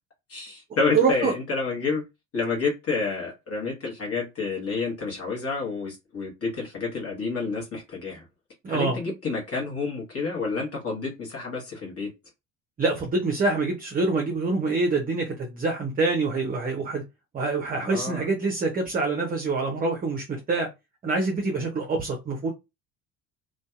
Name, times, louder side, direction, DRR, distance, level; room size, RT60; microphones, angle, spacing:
voice 1, 0.3-2.0 2.3-8.2 8.7-12.1 17.7-18.3, left 4 dB, 30° left, 1.1 m, -29 dB
voice 2, 0.9-1.3 8.6-9.0 12.8-17.0 17.3-20.7 21.0-22.5, right 3 dB, 20° right, 0.6 m, -25 dB
2.6 x 2.3 x 2.3 m
figure-of-eight pair, 60°, 44 cm